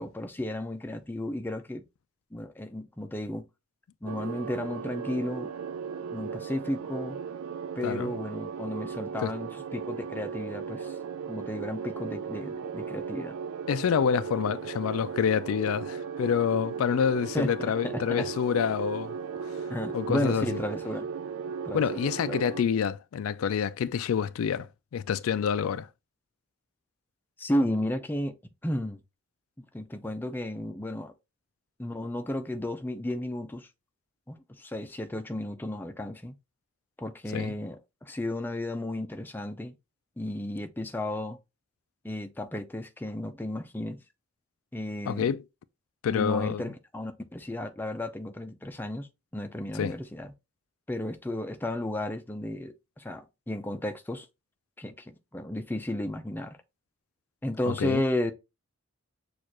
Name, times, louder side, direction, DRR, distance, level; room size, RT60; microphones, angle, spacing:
voice 1, 0.0-1.8 2.3-3.5 4.0-5.5 6.1-7.2 7.8-11.0 11.3-13.4 17.3-18.3 19.7-21.1 21.6-21.8 22.2-22.4 27.4-29.0 29.6-31.1 31.8-33.7 34.3-36.4 37.0-39.8 40.2-41.4 42.0-44.0 44.7-45.3 46.1-49.1 49.3-50.3 50.9-54.3 54.8-56.6 57.4-58.3, left 1 dB, 10° left, 0.4 m, -33 dB
sound 1, 4.1-22.6, right 6 dB, 80° right, 0.4 m, -37 dB
voice 2, 13.7-19.2 19.5-19.6 19.9-20.5 21.7-25.9 37.3-37.5 45.1-45.4 46.0-46.6 49.7-49.9 57.7-58.0, left 7 dB, 80° left, 0.3 m, -27 dB
6.4 x 2.4 x 3.0 m
head